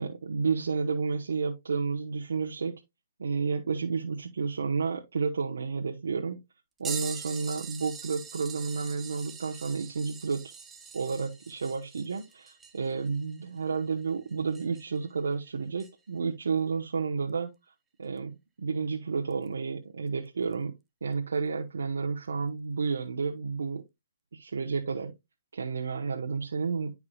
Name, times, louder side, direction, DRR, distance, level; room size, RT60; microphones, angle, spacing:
voice 1, 0.0-2.7 3.2-6.4 6.8-10.4 10.9-17.5 18.0-20.7 21.0-23.8 24.3-25.1 25.5-26.9, right 5 dB, 85° right, 1.1 m, -31 dB
sound 1, 6.8-15.0 15.8-15.9 18.2-18.3 19.3-19.5 20.5-20.6, right 6 dB, 10° right, 0.7 m, -43 dB
11.0 x 4.8 x 2.4 m
hypercardioid pair, 155°, 0 cm